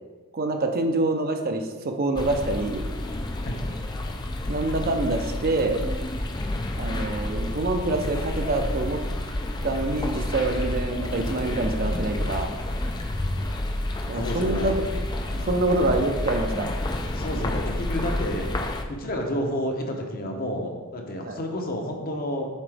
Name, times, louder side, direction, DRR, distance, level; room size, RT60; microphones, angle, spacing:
voice 1, 0.3-2.9 4.5-5.8 6.8-9.0 9.6-12.5 14.1-14.8 15.4-16.7 21.2-21.4, right 2 dB, 45° right, 4 dB, 0.5 m, -26 dB
sound 1, 2.2-18.8, left 1 dB, 20° left, 0.3 m, -29 dB
voice 2, 14.1-14.8 15.3-15.7 17.1-18.5 18.9-22.5, equal, 40° left, 2 dB, 0.8 m, -30 dB
7.3 x 3.9 x 3.4 m, 1.3 s
head